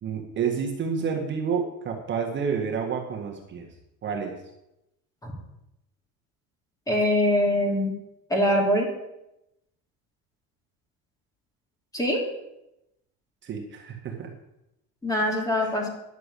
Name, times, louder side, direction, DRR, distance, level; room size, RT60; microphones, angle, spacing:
voice 1, 0.0-3.7 4.0-4.3 13.4-14.3, right 6 dB, 35° right, 1 dB, 1.6 m, -29 dB
voice 2, 6.9-7.9 8.3-8.9 11.9-12.2 15.0-15.9, left 1 dB, 10° left, 0 dB, 3.1 m, -23 dB
11.0 x 6.7 x 8.3 m, 0.89 s
cardioid pair, 155°, 32 cm